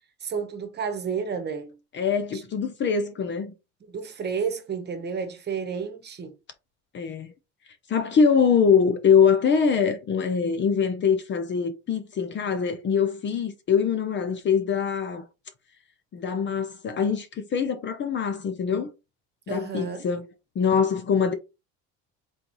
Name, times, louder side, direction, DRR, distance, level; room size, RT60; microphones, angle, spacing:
voice 1, 0.2-1.7 2.3-2.4 3.8-6.3 19.5-20.0, right 6 dB, 30° right, 1.1 m, -31 dB
voice 2, 1.9-3.5 6.9-7.3 7.9-15.2 16.1-18.9 19.5-20.2 20.6-21.3, left 6 dB, 35° left, 0.6 m, -23 dB
4.2 x 4.0 x 3.0 m
cardioid pair, 130°, 33 cm